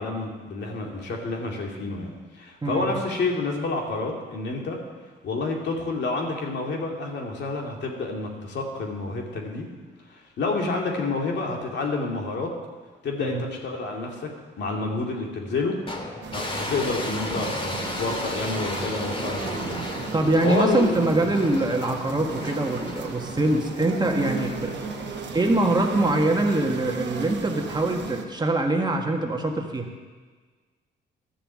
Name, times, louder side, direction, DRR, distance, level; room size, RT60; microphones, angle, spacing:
voice 1, 0.0-4.8 5.2-9.7 10.1-12.5 13.0-14.3 14.6-15.8 16.3-19.7 20.4-21.3, left 3 dB, 60° left, 0 dB, 2.4 m, -29 dB
voice 2, 2.6-3.0 13.2-13.4 20.1-24.8 25.3-29.9, right 2 dB, 20° right, 2 dB, 1.5 m, -23 dB
sound 1, 15.9-27.1, left 2 dB, 25° left, 1.9 m, -35 dB
sound 2, 16.2-28.3, right 6 dB, 65° right, 1.2 m, -35 dB
12.5 x 7.0 x 7.4 m, 1.4 s
cardioid pair, 90°, 20 cm